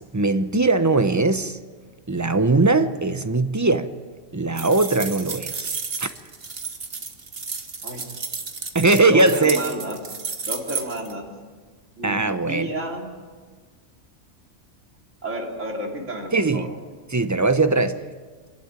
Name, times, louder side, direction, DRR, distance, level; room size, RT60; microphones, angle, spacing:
voice 1, 0.0-1.6 2.1-3.9 4.3-6.1 8.7-9.6 12.0-12.7 16.3-16.7 17.1-18.0, right 3 dB, 15° right, 10 dB, 0.8 m, -20 dB
sound 1, 4.6-11.1, right 4 dB, 50° right, 1.7 m, -32 dB
voice 2, 9.0-10.0 10.4-11.2 12.0-12.2 12.5-13.1 15.2-16.7, right 1 dB, 80° right, 0 dB, 3.9 m, -31 dB
25.5 x 12.0 x 9.0 m, 1.5 s
omnidirectional pair, 1.3 m